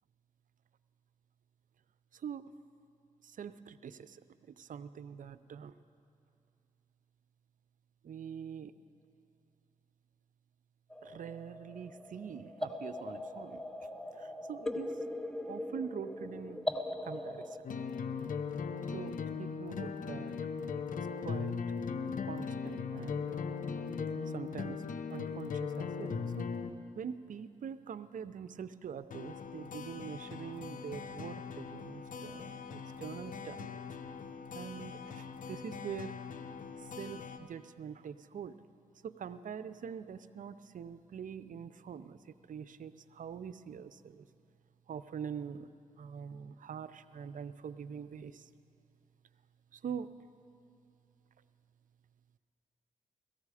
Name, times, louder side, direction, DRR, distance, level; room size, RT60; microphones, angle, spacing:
voice 1, 2.1-2.5 3.2-4.2 4.6-5.7 8.0-8.7 11.0-13.6 14.1-15.0 15.5-16.6 17.0-17.7 18.9-20.4 20.8-21.5 22.2-23.5 24.3-24.8 25.1-26.5 27.0-33.8 34.5-36.2 36.8-38.6 39.0-44.3 44.9-45.7 46.0-48.5 49.7-50.1, right 7 dB, 65° right, 14 dB, 0.5 m, -44 dB
sound 1, 10.9-17.6, left 1 dB, 5° left, 0.8 m, -40 dB
sound 2, 17.6-26.7 29.1-37.4, left 5 dB, 65° left, 0.7 m, -39 dB
17.5 x 14.5 x 4.9 m, 2.5 s
cardioid pair, 60°, 15 cm